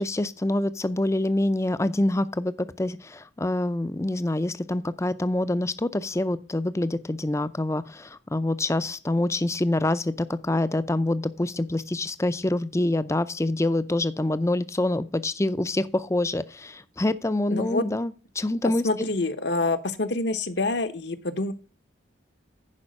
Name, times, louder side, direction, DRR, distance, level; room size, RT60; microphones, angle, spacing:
voice 1, 0.0-18.8, left 1 dB, 15° left, 14 dB, 0.5 m, -26 dB
voice 2, 17.5-17.8 18.6-21.5, left 2 dB, 60° left, 10 dB, 1.0 m, -27 dB
10.5 x 5.1 x 6.3 m, 0.35 s
head